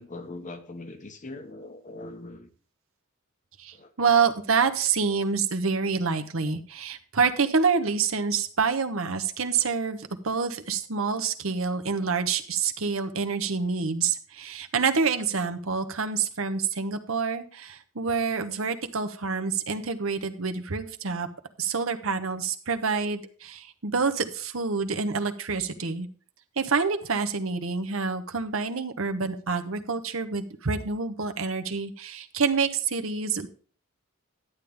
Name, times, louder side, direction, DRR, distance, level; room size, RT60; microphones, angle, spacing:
voice 1, 0.0-2.5 3.7-3.9, left 2 dB, 35° left, 1.0 m, -41 dB
voice 2, 3.6-21.3 21.6-26.1 26.6-33.5, right 5 dB, 70° right, 1.0 m, -27 dB
11.5 x 8.7 x 3.5 m
head